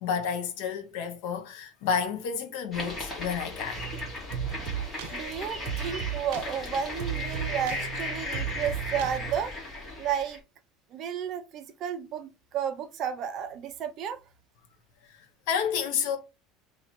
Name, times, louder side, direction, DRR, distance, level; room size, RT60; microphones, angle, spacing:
voice 1, 0.0-3.9 15.0-15.2 15.5-16.2, left 7 dB, 65° left, 0.9 m, -30 dB
sound 1, 2.7-10.4, left 2 dB, 20° left, 1.4 m, -37 dB
sound 2, 3.7-9.4, right 10 dB, 80° right, 0.6 m, -36 dB
voice 2, 5.1-9.5 10.0-10.4 10.9-14.2, right 8 dB, 35° right, 0.6 m, -32 dB
2.9 x 2.8 x 4.2 m
cardioid pair, 170°, 0 cm